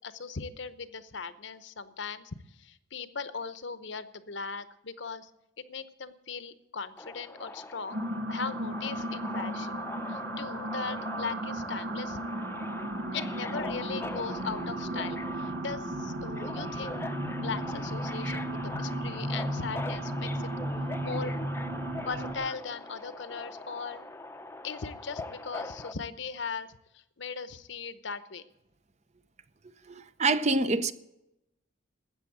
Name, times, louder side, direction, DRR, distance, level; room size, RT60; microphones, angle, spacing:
voice 1, 0.0-5.3 5.7-8.0 8.3-12.2 13.1-20.5 21.0-21.3 22.0-24.0 24.6-28.4, left 5 dB, 65° left, 0.9 m, -39 dB
Subway metro underground, 7.0-25.9, left 2 dB, 10° left, 0.6 m, -42 dB
sound 1, 7.9-22.3, right 1 dB, 90° right, 2.0 m, -35 dB
voice 2, 29.9-30.9, right 3 dB, 35° right, 0.6 m, -26 dB
13.5 x 8.7 x 8.7 m
head